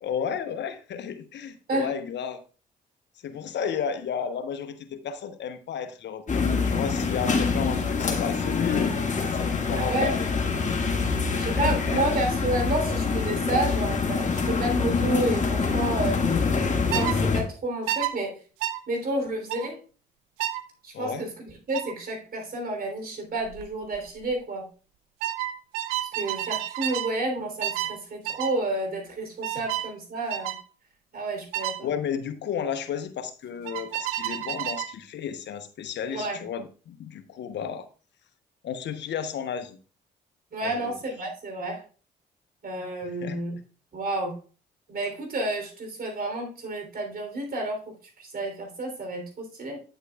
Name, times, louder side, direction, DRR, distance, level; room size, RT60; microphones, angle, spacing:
voice 1, 0.0-2.4 3.2-8.9 9.3-10.3 11.1-12.0 20.9-21.2 31.8-37.9 38.6-39.8 40.6-40.9 43.0-43.4, left 7 dB, 60° left, 10 dB, 1.0 m, -33 dB
sound 1, 6.3-17.4, left 4 dB, 35° left, 2.0 m, -25 dB
voice 2, 9.7-10.1 11.4-16.4 16.9-18.4 18.9-19.8 20.8-21.3 21.7-24.7 26.0-30.5 31.1-31.9 36.1-36.4 40.5-41.8 42.6-43.5 43.9-44.4 44.9-49.8, right 2 dB, 45° right, 3 dB, 3.5 m, -30 dB
sound 2, 16.9-17.2 17.9-18.1 18.6-18.8 19.5-19.7 20.4-20.6 21.7-21.9 23.4-23.6 23.9-24.3 25.2-27.1 27.6-28.0 28.3-28.6 29.4-29.9 30.3-30.6 31.5-31.8 33.7-34.9, right 13 dB, 75° right, 0.6 m, -30 dB
9.1 x 8.0 x 2.4 m, 0.37 s
hypercardioid pair, 50°, 21 cm